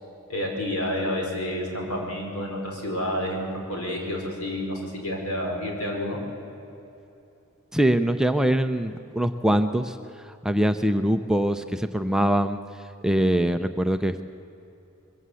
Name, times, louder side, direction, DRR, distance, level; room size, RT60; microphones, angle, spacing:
voice 1, 0.3-6.2, left 1 dB, 75° left, 0 dB, 5.0 m, -29 dB
voice 2, 7.7-10.0 10.4-12.6 13.0-14.2, right 1 dB, 5° right, 7 dB, 0.5 m, -23 dB
22.5 x 15.0 x 8.3 m, 2.9 s
head